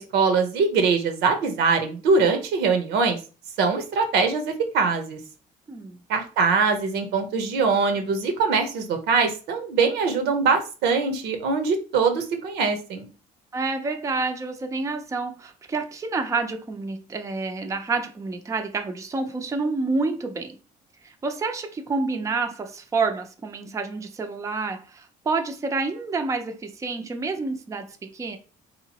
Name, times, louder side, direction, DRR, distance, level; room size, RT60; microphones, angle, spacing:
voice 1, 0.0-3.2 3.6-5.2 6.1-13.1, right 4 dB, 85° right, 0.8 m, -22 dB
voice 2, 13.5-20.6 21.0-28.4, right 3 dB, 20° right, 0.5 m, -28 dB
3.6 x 2.9 x 2.8 m
cardioid pair, 110°, 17 cm